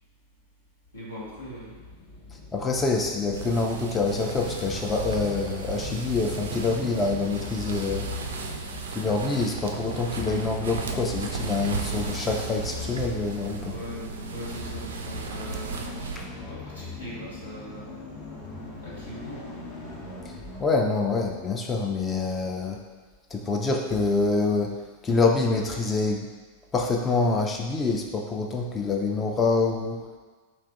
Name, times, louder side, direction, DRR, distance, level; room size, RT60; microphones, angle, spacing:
voice 1, 0.9-1.8 13.6-15.8 16.5-18.0 18.8-19.5, equal, 80° left, -7 dB, 0.8 m, -40 dB
sound 1, 1.2-20.7, left 3 dB, 40° left, 0.8 m, -39 dB
voice 2, 2.5-8.1 8.9-13.8 16.2-16.3 20.6-22.8 23.3-24.8 25.0-26.3 26.7-30.0, left 3 dB, 20° left, 1 dB, 0.3 m, -26 dB
sound 2, 3.3-16.2, right 6 dB, 65° right, 0.3 m, -36 dB
2.9 x 2.4 x 3.5 m, 1.4 s
figure-of-eight pair, 90°, 0 cm